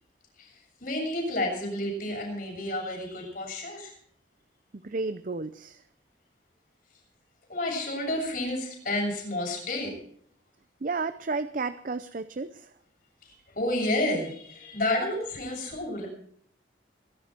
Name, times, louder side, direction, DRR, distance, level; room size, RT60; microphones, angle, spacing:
voice 1, 0.8-3.9 7.5-9.9 13.6-16.1, left 1 dB, 50° left, 0 dB, 7.0 m, -30 dB
voice 2, 4.8-5.8 10.8-12.7, right 3 dB, 45° right, 13 dB, 0.5 m, -32 dB
21.5 x 11.0 x 4.4 m, 0.65 s
head